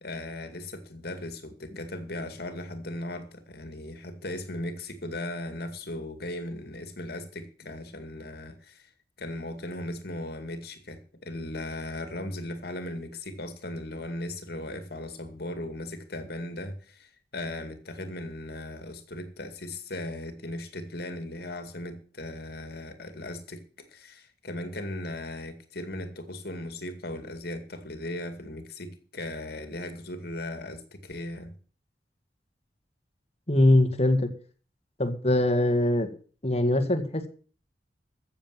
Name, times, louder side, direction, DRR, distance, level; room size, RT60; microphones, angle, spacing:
voice 1, 0.0-8.9 9.2-31.5, left 1 dB, 60° left, 2.2 m, -37 dB
voice 2, 33.5-34.3 35.0-36.1 36.4-37.3, left 1 dB, 35° left, 1.9 m, -22 dB
14.5 x 7.4 x 7.6 m
head